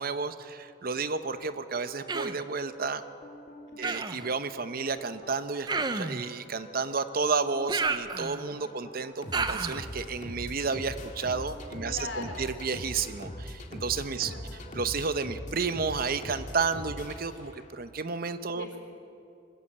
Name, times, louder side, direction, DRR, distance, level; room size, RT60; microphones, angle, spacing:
voice 1, 0.0-3.0 3.8-14.3 14.7-18.7, right 4 dB, 55° right, 11 dB, 0.8 m, -31 dB
sound 1, 1.2-17.9, left 1 dB, 40° left, 2.1 m, -43 dB
Human voice, 2.1-2.5 3.8-4.3 5.7-6.2 7.7-8.6 9.3-9.9, right 4 dB, 25° right, 0.7 m, -31 dB
voice 2, 3.7-4.0 8.5-8.7 11.8-12.5 14.2-14.7 18.6-18.8, left 2 dB, 75° left, 3 dB, 3.6 m, -42 dB
22.0 x 13.5 x 8.7 m, 2.6 s
head